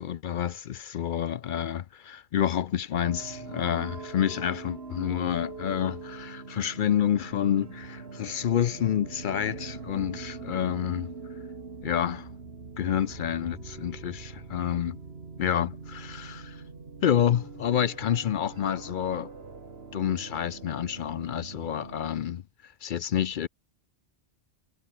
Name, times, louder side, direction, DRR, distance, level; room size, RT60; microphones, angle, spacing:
voice 1, 0.0-11.1 11.8-12.3 12.8-15.0 15.4-16.6 17.0-19.3 19.9-22.4 22.8-23.5, left 9 dB, 60° left, 0.6 m, -28 dB
sound 1, 2.9-22.1, right 4 dB, 55° right, 2.2 m, -43 dB
omnidirectional pair, 1.2 m